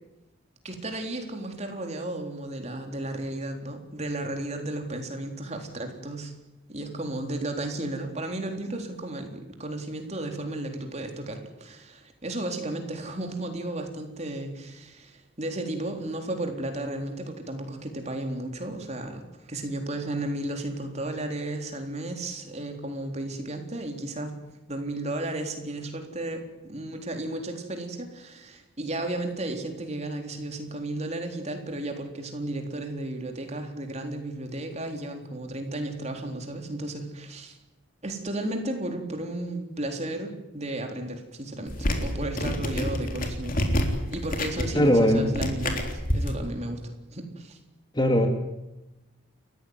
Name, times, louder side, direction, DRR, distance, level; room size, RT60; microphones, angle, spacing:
voice 1, 0.6-6.3 6.7-24.4 24.7-37.6 38.0-43.6 44.1-46.8 47.1-47.6, right 1 dB, 30° right, 4 dB, 3.9 m, -34 dB
sound 1, 41.7-46.3, left 1 dB, 40° left, 3.6 m, -28 dB
voice 2, 44.7-45.2 47.9-48.3, equal, 20° left, 5 dB, 2.6 m, -19 dB
30.0 x 15.5 x 9.7 m, 0.97 s
head